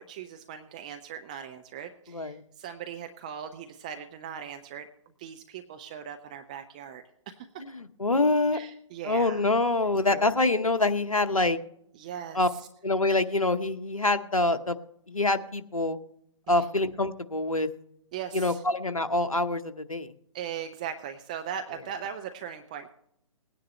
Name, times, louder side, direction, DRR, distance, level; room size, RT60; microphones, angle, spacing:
voice 1, 0.0-4.9 5.2-7.5 8.5-9.4 10.1-10.3 11.9-12.7 16.5-16.7 18.1-18.6 20.3-22.9, right 8 dB, 15° right, 6 dB, 0.3 m, -39 dB
voice 2, 7.6-8.6 9.0-11.6 12.3-12.5 12.8-14.8 15.1-16.0 16.5-17.7 18.3-20.1, left 2 dB, 80° left, 9 dB, 1.0 m, -25 dB
19.5 x 9.8 x 3.2 m, 0.73 s
figure-of-eight pair, 130°, 18 cm